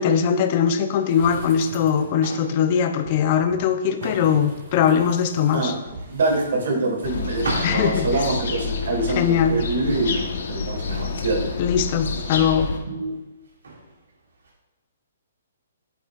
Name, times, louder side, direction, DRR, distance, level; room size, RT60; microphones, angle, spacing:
voice 1, 0.0-5.7 7.6-8.1 9.2-9.5 11.6-12.7, left 8 dB, 40° left, 9 dB, 0.5 m, -21 dB
sound 1, 1.0-2.3 3.0-7.5 7.8-7.9, right 2 dB, 40° right, 1.7 m, -41 dB
sound 2, 1.6-14.5, right 2 dB, 90° right, 2.2 m, -38 dB
voice 2, 6.1-11.5 12.1-12.4 12.9-13.1, right 2 dB, 70° right, 1 dB, 2.1 m, -25 dB
sound 3, 7.0-12.8, left 4 dB, 65° left, 1.1 m, -28 dB
8.5 x 7.8 x 2.4 m, 1.0 s
hypercardioid pair, 150°, 0 cm